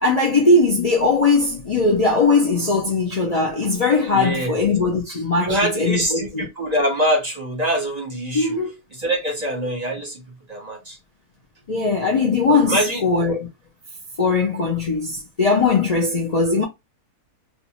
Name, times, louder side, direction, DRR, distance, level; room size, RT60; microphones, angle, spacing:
voice 1, 0.0-6.5 8.3-8.7 11.7-13.5 14.2-16.6, left 3 dB, 65° left, 0.3 m, -19 dB
voice 2, 4.1-4.6 5.4-8.6 8.9-10.2 10.5-11.0 12.5-13.0 13.3-13.4, equal, 35° right, 0.7 m, -24 dB
2.5 x 2.3 x 2.8 m
omnidirectional pair, 1.5 m